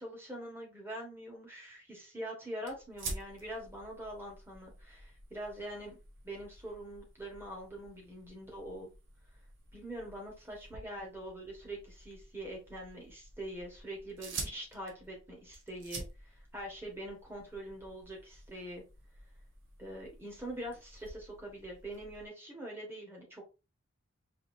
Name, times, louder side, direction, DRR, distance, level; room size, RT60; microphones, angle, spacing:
voice 1, 0.0-6.0 6.2-8.9 9.7-16.0 16.3-18.8 19.8-23.4, right 1 dB, 10° right, -1 dB, 1.2 m, -44 dB
sound 1, 2.6-22.3, right 3 dB, 55° right, 1.0 m, -49 dB
4.8 x 2.8 x 2.5 m, 0.30 s
head